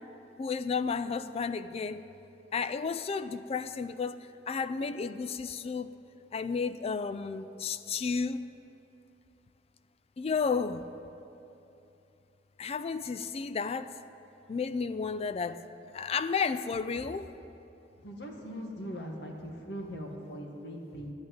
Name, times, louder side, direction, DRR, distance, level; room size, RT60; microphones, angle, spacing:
voice 1, 0.4-2.1 2.5-5.9 6.3-8.4 10.2-10.8 12.6-14.0 14.5-15.7 15.9-17.3, left 5 dB, 35° left, 13 dB, 0.3 m, -32 dB
voice 2, 18.0-21.1, equal, 75° left, 1 dB, 1.9 m, -40 dB
10.5 x 8.7 x 9.4 m, 2.8 s
head